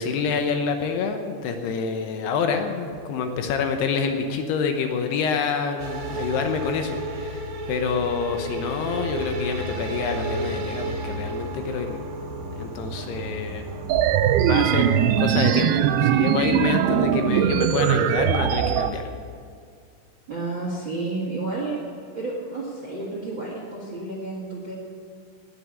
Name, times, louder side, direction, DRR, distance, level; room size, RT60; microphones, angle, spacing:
voice 1, 0.0-12.0 12.6-13.6 14.3-19.0, left 5 dB, 75° left, 5 dB, 2.8 m, -27 dB
sound 1, 5.8-18.1, right 2 dB, 65° right, 2.7 m, -33 dB
sound 2, 13.9-18.9, right 11 dB, 90° right, 2.2 m, -21 dB
voice 2, 20.3-21.8 22.1-24.8, right 3 dB, 45° right, -3 dB, 1.6 m, -31 dB
19.5 x 6.7 x 8.4 m, 2.2 s
omnidirectional pair, 5.1 m